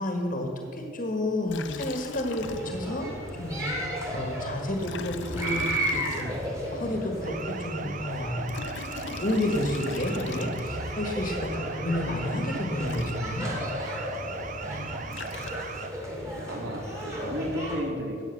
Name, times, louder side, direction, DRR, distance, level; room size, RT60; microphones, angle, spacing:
voice 1, 0.0-3.1 3.4-3.7 4.1-8.6 9.1-13.5, left 1 dB, 40° left, 2 dB, 1.6 m, -30 dB
Liquid, 1.5-3.0 3.3-3.4 4.8-6.7 8.3-11.0 12.6-12.7 12.9-13.7 14.9-16.0, left 5 dB, 60° left, 0.6 m, -41 dB
sound 1, 2.4-17.8, equal, 15° right, 2.7 m, -35 dB
sound 2, 7.2-15.9, right 5 dB, 40° right, 0.7 m, -38 dB
voice 2, 14.4-15.5 16.3-18.3, equal, 55° right, 0 dB, 2.6 m, -35 dB
13.5 x 8.8 x 7.1 m, 2.4 s
head